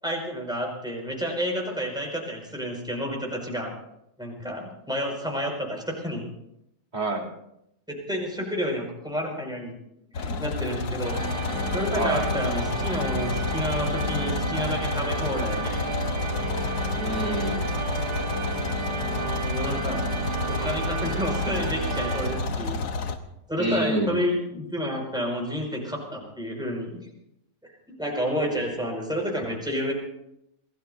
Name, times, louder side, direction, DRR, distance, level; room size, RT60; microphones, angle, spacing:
voice 1, 0.0-3.7 4.2-6.3 7.9-9.8 10.2-11.2 11.7-15.8 19.4-20.1 20.5-22.8 23.5-27.0 28.0-29.9, equal, ahead, 0 dB, 5.4 m, -30 dB
voice 2, 6.9-7.3 11.9-12.3 17.0-17.7 23.6-24.2, right 1 dB, 25° right, -3 dB, 3.1 m, -27 dB
sound 1, 10.1-23.2, left 4 dB, 70° left, 1.7 m, -30 dB
sound 2, 11.0-23.0, right 3 dB, 75° right, 2.1 m, -31 dB
27.0 x 18.5 x 2.7 m, 0.80 s
omnidirectional pair, 1.7 m